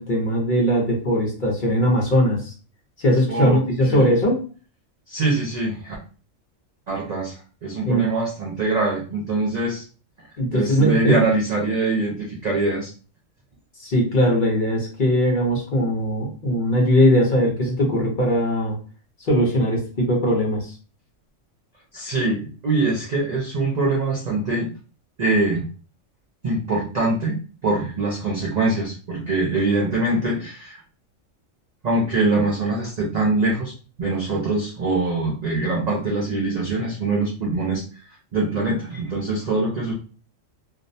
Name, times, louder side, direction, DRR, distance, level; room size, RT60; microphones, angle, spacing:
voice 1, 0.0-2.5 3.0-4.4 7.8-8.1 10.4-11.2 13.8-18.8 19.3-20.7, equal, 50° left, -2 dB, 0.7 m, -20 dB
voice 2, 3.3-3.6 3.9-4.1 5.1-6.0 6.9-9.8 10.5-12.9 21.9-24.7 25.2-25.7 26.4-30.8 31.8-39.9, right 2 dB, 60° right, -3 dB, 0.4 m, -23 dB
2.5 x 2.1 x 2.6 m, 0.38 s
omnidirectional pair, 1.4 m